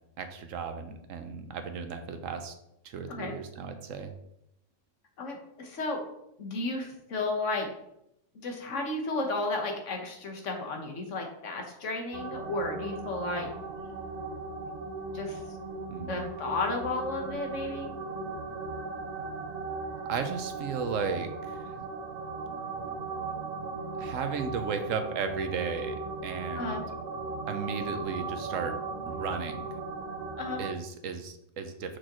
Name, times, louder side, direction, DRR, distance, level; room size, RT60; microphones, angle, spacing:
voice 1, 0.2-2.5 2.8-4.1 15.9-16.3 20.0-21.9 22.5-22.7 23.5-23.7 24.0-26.0 26.2-26.8 27.5-28.7 29.1-29.7 30.6-32.0, right 6 dB, 70° right, 7 dB, 1.1 m, -35 dB
voice 2, 5.2-6.0 6.4-7.7 8.4-13.5 15.1-15.4 16.0-17.9 26.6-26.8 30.4-30.6, left 2 dB, 60° left, 2 dB, 1.5 m, -33 dB
sound 1, 12.1-30.7, right 3 dB, 90° right, 0.3 m, -37 dB
6.4 x 6.3 x 3.0 m, 0.80 s
omnidirectional pair, 1.5 m